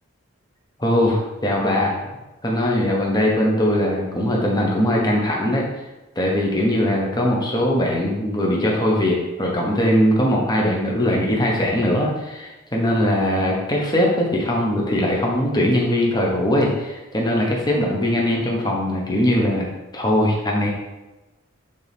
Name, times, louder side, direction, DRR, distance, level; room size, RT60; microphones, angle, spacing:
voice 1, 0.8-2.0 2.4-5.7 6.2-19.6 19.9-20.7, left 1 dB, 20° left, -2 dB, 1.1 m, -20 dB
9.0 x 4.0 x 3.6 m, 1.1 s
head